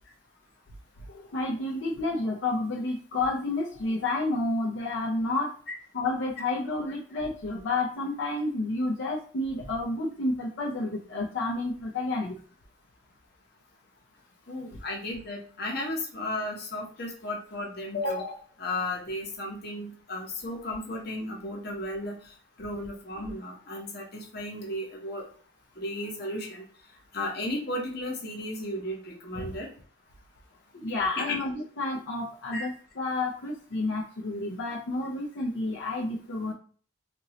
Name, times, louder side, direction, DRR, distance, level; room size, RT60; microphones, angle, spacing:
voice 1, 1.1-5.5 5.9-12.4 29.4-29.5 30.7-36.5, left 2 dB, 80° left, -3 dB, 0.6 m, -30 dB
voice 2, 14.5-25.3 25.8-26.6 27.1-29.7 31.2-31.4 32.5-32.7, left 1 dB, 55° left, 0 dB, 0.9 m, -34 dB
2.8 x 2.6 x 3.0 m, 0.43 s
head